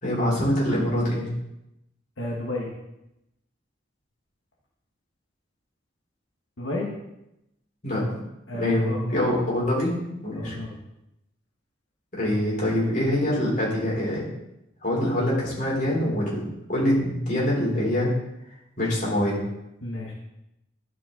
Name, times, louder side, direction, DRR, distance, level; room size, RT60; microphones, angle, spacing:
voice 1, 0.0-1.3 7.8-8.1 8.6-9.9 10.2-10.6 12.2-14.2 14.8-16.4 16.7-18.1 18.8-19.4, left 1 dB, 40° left, -5 dB, 3.4 m, -24 dB
voice 2, 2.2-2.7 6.6-6.9 8.5-9.2 10.3-10.8 19.8-20.1, left 1 dB, 85° left, -2 dB, 1.4 m, -32 dB
11.5 x 5.5 x 3.8 m, 0.88 s
head